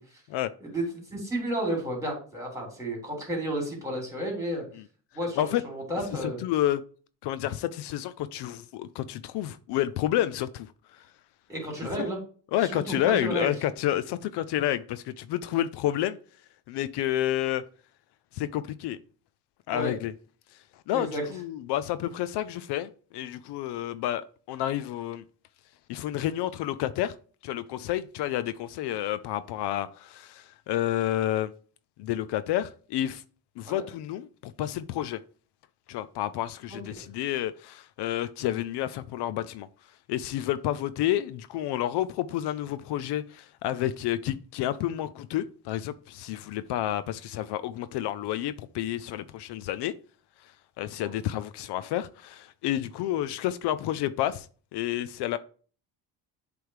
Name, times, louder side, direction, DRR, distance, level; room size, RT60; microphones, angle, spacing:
voice 1, 0.6-4.6 5.1-6.4 11.5-12.2 12.6-13.5 19.7-19.9 20.9-21.2 33.7-33.9 36.7-36.8 51.0-51.2, right 1 dB, 10° right, 3.2 m, -32 dB
voice 2, 6.2-6.8 7.2-10.7 10.9-11.0 12.0-12.1 12.5-16.2 16.7-17.6 18.3-19.0 19.7-20.1 20.9-25.2 25.9-27.1 27.4-31.5 32.0-33.2 33.6-35.2 35.9-39.7 40.1-49.9 50.8-54.5 54.7-55.4, left 12 dB, 75° left, 0.6 m, -30 dB
7.8 x 3.5 x 4.8 m
cardioid pair, 115°, 41 cm